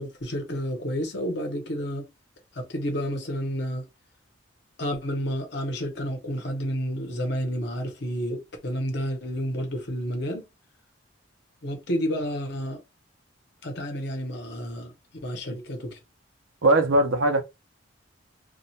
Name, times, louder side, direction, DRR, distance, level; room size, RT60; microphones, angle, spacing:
voice 1, 0.0-2.1 2.5-3.9 4.8-10.5 11.6-12.8 13.6-14.9 15.2-16.0, equal, 55° left, 0.8 m, -30 dB
voice 2, 16.6-17.4, right 2 dB, 75° right, 0.6 m, -20 dB
2.3 x 2.2 x 2.7 m
head